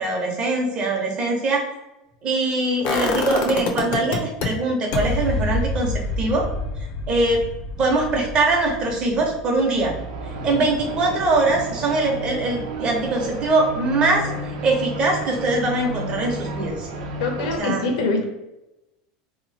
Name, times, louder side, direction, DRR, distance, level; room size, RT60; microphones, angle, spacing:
voice 1, 0.0-1.6 2.2-6.5 7.1-7.4 7.8-9.9 10.4-16.9 17.6-17.8, right 2 dB, 30° right, 0 dB, 0.9 m, -22 dB
sound 1, 2.8-4.5 4.9-10.8 11.1-11.2, left 3 dB, 50° left, 0.6 m, -27 dB
sound 2, 9.8-17.6, right 2 dB, 75° right, 0.9 m, -32 dB
voice 2, 17.2-18.2, left 3 dB, 75° left, 3 dB, 0.8 m, -23 dB
3.0 x 2.4 x 4.0 m, 0.94 s
supercardioid pair, 160°, 3 cm